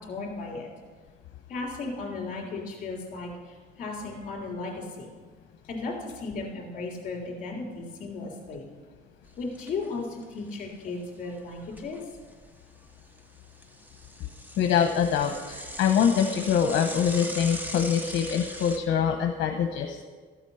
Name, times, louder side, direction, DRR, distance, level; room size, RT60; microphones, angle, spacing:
voice 1, 0.1-0.7 1.5-5.1 5.7-8.6 9.4-12.0, left 3 dB, 40° left, -1 dB, 3.4 m, -35 dB
Bicycle / Mechanisms, 9.3-9.9 10.2-10.3 10.6-10.7 11.3-12.5 12.9-18.8, equal, 10° right, 0.7 m, -40 dB
voice 2, 14.6-20.0, left 8 dB, 60° left, 4 dB, 0.9 m, -24 dB
13.5 x 8.2 x 5.6 m, 1.5 s
cardioid pair, 160°, 20 cm